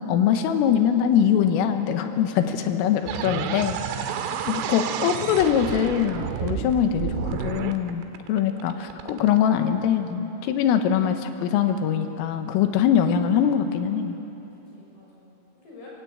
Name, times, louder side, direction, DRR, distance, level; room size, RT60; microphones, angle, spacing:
voice 1, 0.0-3.8 4.5-14.2, left 9 dB, 85° left, 7 dB, 3.9 m, -23 dB
voice 2, 2.0-4.1 6.6-8.6 14.5-15.9, left 2 dB, 50° left, -4 dB, 8.2 m, -49 dB
sound 1, 3.1-9.4, right 8 dB, 80° right, 3.6 m, -30 dB
24.0 x 23.5 x 8.6 m, 2.9 s
omnidirectional pair, 5.9 m